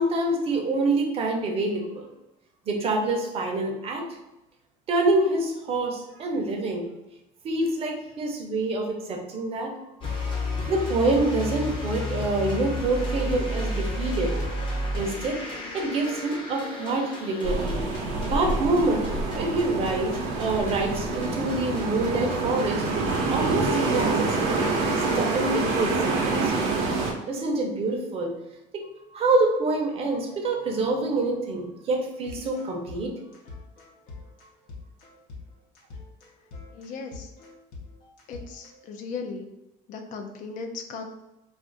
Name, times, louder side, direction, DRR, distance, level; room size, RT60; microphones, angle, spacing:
voice 1, 0.0-2.1 2.7-4.1 4.9-6.9 7.4-9.7 10.0-10.1 10.7-14.3 14.9-17.8 18.2-22.8 23.3-24.7 25.1-26.6 27.3-28.3 29.1-33.1, right 2 dB, 40° right, 1 dB, 0.6 m, -26 dB
sound 1, 10.0-23.4, left 1 dB, 30° left, 0.7 m, -33 dB
sound 2, 17.4-27.1, right 3 dB, 85° right, 0.7 m, -26 dB
sound 3, 32.1-38.9, left 3 dB, 80° left, 0.8 m, -45 dB
voice 2, 36.7-37.3 38.3-39.5 39.9-41.0, left 4 dB, 55° left, 5 dB, 0.4 m, -37 dB
2.5 x 2.4 x 3.7 m, 0.96 s
cardioid pair, 150°, 16 cm